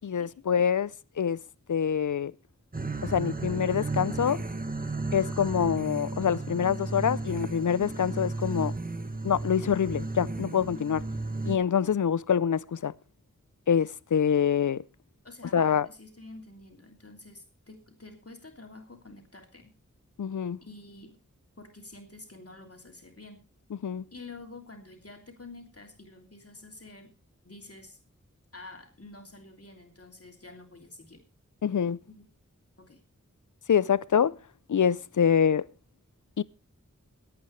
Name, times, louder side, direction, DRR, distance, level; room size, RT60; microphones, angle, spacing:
voice 1, 0.0-0.9 1.2-1.4 1.7-2.3 3.0-4.4 5.1-8.7 9.2-11.0 11.5-12.9 13.7-14.8 15.5-15.9 20.2-20.6 23.8-24.1 31.6-32.0 33.7-34.3 34.7-35.6 36.4-36.5, left 8 dB, 80° left, 0.5 m, -25 dB
sound 1, 2.7-11.6, right 3 dB, 30° right, 1.4 m, -34 dB
voice 2, 15.2-19.7 20.6-21.2 21.6-23.4 24.1-27.1 27.4-28.0 28.5-31.2 32.1-32.3 32.8-33.0, left 2 dB, 50° left, 2.9 m, -48 dB
22.0 x 8.7 x 3.2 m
wide cardioid pair, 55°, 30 cm